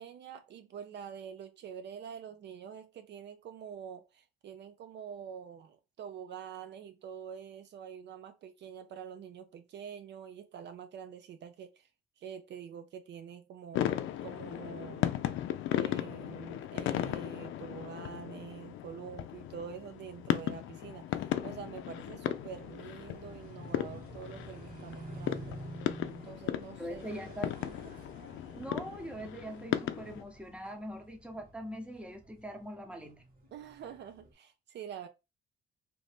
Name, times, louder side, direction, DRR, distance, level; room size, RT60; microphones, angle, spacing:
voice 1, 0.0-11.9 12.2-13.9 14.2-15.2 15.7-25.6 26.2-27.9 33.5-35.1, right 8 dB, 60° right, 0.4 m, -46 dB
sound 1, 13.7-30.2, left 12 dB, 80° left, 0.4 m, -36 dB
sound 2, 21.2-34.3, right 1 dB, 45° right, 1.7 m, -50 dB
voice 2, 26.8-27.5 28.5-33.2, equal, 5° right, 0.8 m, -42 dB
2.8 x 2.6 x 3.4 m
cardioid pair, 90°, 20 cm